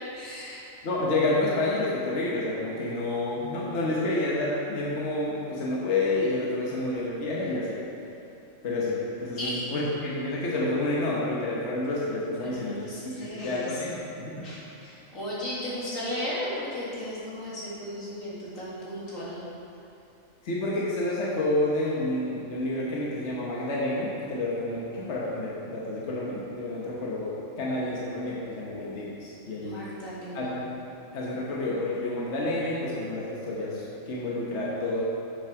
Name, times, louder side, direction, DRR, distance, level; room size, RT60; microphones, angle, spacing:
voice 1, 0.1-0.6 9.4-9.6 12.4-13.8 14.4-19.4 29.6-30.5, left 1 dB, 80° left, -8 dB, 2.5 m, -35 dB
voice 2, 0.8-7.8 8.6-12.8 13.0-14.5 20.4-29.8 30.3-30.7 31.1-35.0, left 2 dB, 60° left, -5 dB, 1.4 m, -29 dB
7.8 x 6.3 x 4.8 m, 2.9 s
omnidirectional pair, 1.4 m